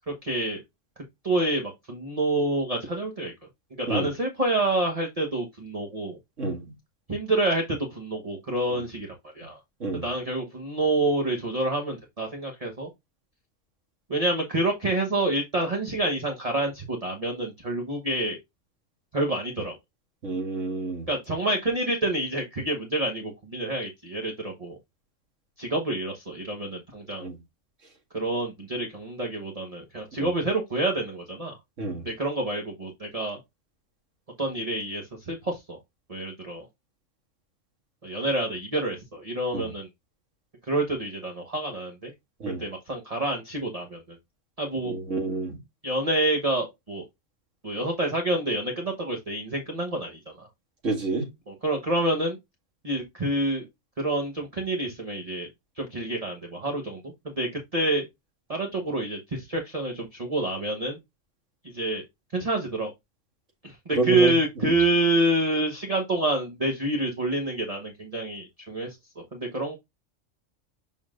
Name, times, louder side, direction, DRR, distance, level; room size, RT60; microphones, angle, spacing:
voice 1, 0.2-0.6 1.0-3.3 3.8-6.2 7.1-9.6 9.9-12.9 14.1-18.4 19.1-19.7 21.1-24.8 25.6-27.3 28.1-31.6 32.0-33.4 34.4-35.8 36.1-36.7 38.0-39.9 40.6-42.1 42.5-44.2 44.6-44.9 45.8-47.0 47.6-50.5 51.5-52.4 52.8-53.7 54.0-55.5 55.8-58.0 58.5-61.0 61.6-62.0 62.3-62.9 63.6-69.8, right 2 dB, 30° right, 1.1 m, -28 dB
voice 2, 20.2-21.1 27.2-27.4 30.2-30.3 31.8-32.1 39.5-39.7 42.4-42.6 44.8-45.6 50.8-51.3 64.0-64.3 64.6-64.8, right 3 dB, 85° right, 2.4 m, -28 dB
7.0 x 5.6 x 2.5 m
omnidirectional pair, 1.3 m